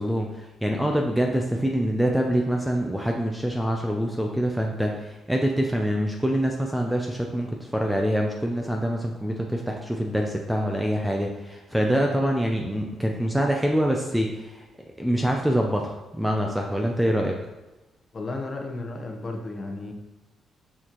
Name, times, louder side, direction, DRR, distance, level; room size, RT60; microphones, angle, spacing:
voice 1, 0.0-14.6 15.0-17.4, equal, 5° right, 1 dB, 0.5 m, -25 dB
voice 2, 18.1-19.9, left 2 dB, 30° left, 2 dB, 0.9 m, -33 dB
6.3 x 6.2 x 3.0 m, 1.1 s
cardioid pair, 140°, 0 cm